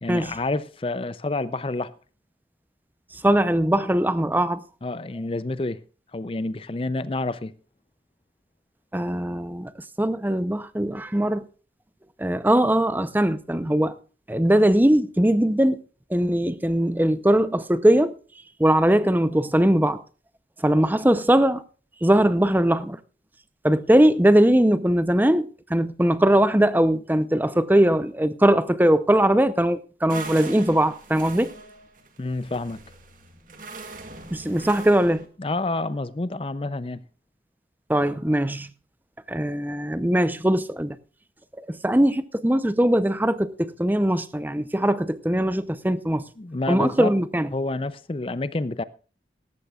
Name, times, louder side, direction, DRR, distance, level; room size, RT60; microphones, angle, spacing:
voice 1, 0.0-1.9 4.8-5.8 6.1-7.5 32.2-32.8 35.4-37.0 46.4-47.1 47.5-48.8, left 2 dB, 30° left, 0.5 m, -28 dB
voice 2, 3.1-4.6 8.9-11.5 12.2-14.0 14.3-15.8 16.1-18.2 18.6-20.0 20.6-21.6 22.0-23.0 23.6-31.5 34.3-35.2 37.9-38.7 39.3-41.0 41.5-46.2 46.7-47.5, right 1 dB, 10° right, 0.6 m, -20 dB
sound 1, 30.1-35.3, right 3 dB, 45° right, 2.1 m, -41 dB
18.0 x 15.0 x 2.4 m
head